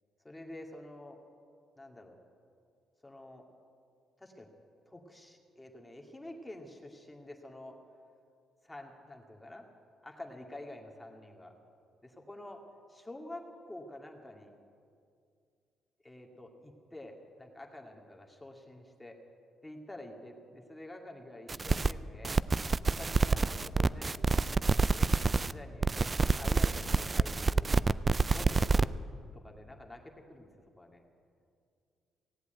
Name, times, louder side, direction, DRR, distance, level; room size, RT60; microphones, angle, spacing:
voice 1, 0.2-1.2 1.8-2.2 3.0-3.4 4.2-4.5 4.9-7.8 8.6-9.6 10.0-11.5 12.0-12.6 12.9-14.5 16.0-19.2 19.6-22.4 22.8-24.3 24.6-27.8 28.3-29.0 29.4-30.0 30.3-30.5 30.8-31.0, left 1 dB, 10° left, 1 dB, 2.0 m, -48 dB
sound 1, 21.5-21.9 22.2-25.5 25.8-28.8, right 4 dB, 30° right, 0.4 m, -27 dB
17.5 x 8.1 x 9.1 m, 2.3 s
cardioid pair, 90°, 0 cm